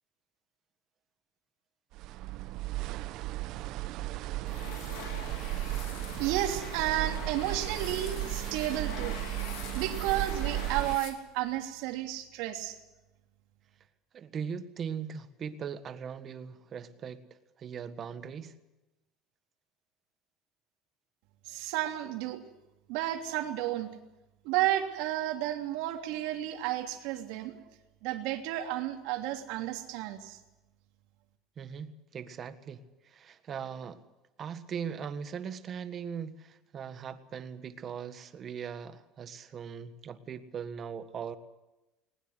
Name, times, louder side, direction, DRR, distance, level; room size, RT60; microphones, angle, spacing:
sound 1, 1.9-11.0, right 16 dB, 60° right, 0.9 m, -35 dB
sound 2, 4.5-11.6, left 9 dB, 85° left, 3.6 m, -44 dB
voice 1, 6.2-9.2 9.7-12.8 21.5-22.4 22.9-23.9 24.4-27.6 28.0-30.4, right 13 dB, 75° right, 4 dB, 3.1 m, -32 dB
voice 2, 14.1-17.2 17.6-18.5 31.6-34.0 34.4-41.4, right 7 dB, 35° right, 10 dB, 1.6 m, -40 dB
20.5 x 20.5 x 8.1 m, 1.0 s
cardioid pair, 150°, 0 cm